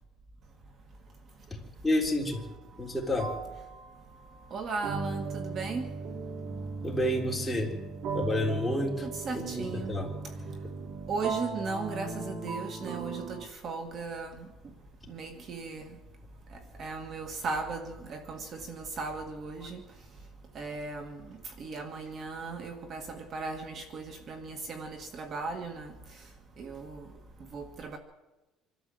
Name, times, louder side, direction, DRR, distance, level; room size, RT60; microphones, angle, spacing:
voice 1, 1.8-2.4 2.8-3.3 6.8-7.7 8.1-9.1 9.3-10.1, left 1 dB, 5° left, -2 dB, 3.7 m, -29 dB
sound 1, 2.3-2.5 3.2-13.5, right 4 dB, 65° right, 2.7 m, -38 dB
voice 2, 4.5-5.9 9.0-9.9 11.1-14.5 15.1-15.9 16.8-19.8 20.6-21.2 21.6-25.9 26.6-27.0 27.5-28.0, right 4 dB, 40° right, 6 dB, 1.8 m, -37 dB
26.0 x 12.5 x 7.8 m, 1.1 s
cardioid pair, 155°, 0 cm